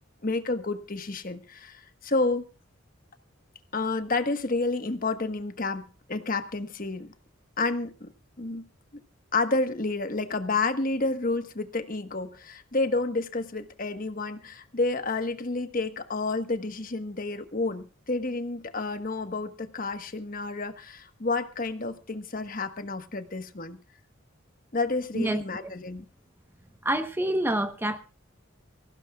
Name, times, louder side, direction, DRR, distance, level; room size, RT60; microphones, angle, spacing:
voice 1, 0.2-2.4 3.7-7.1 7.6-8.1 8.4-8.7 9.3-23.8 24.7-26.1, left 3 dB, 45° left, 9 dB, 1.3 m, -30 dB
voice 2, 25.1-25.7 26.8-28.0, right 1 dB, 10° right, 8 dB, 1.0 m, -27 dB
25.0 x 16.0 x 2.4 m, 0.33 s
head